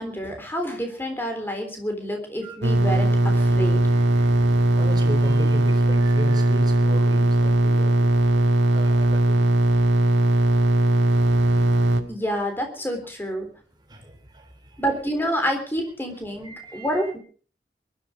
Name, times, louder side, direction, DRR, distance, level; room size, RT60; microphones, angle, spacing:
voice 1, 0.0-3.8 12.1-13.5 14.8-17.2, equal, 10° left, 4 dB, 3.7 m, -28 dB
sound 1, 2.6-12.0, right 1 dB, 90° right, 2.0 m, -19 dB
voice 2, 3.9-4.3 4.8-9.4 13.9-14.0 16.4-17.1, right 1 dB, 25° right, 5 dB, 3.4 m, -36 dB
22.0 x 12.0 x 5.0 m, 0.42 s
head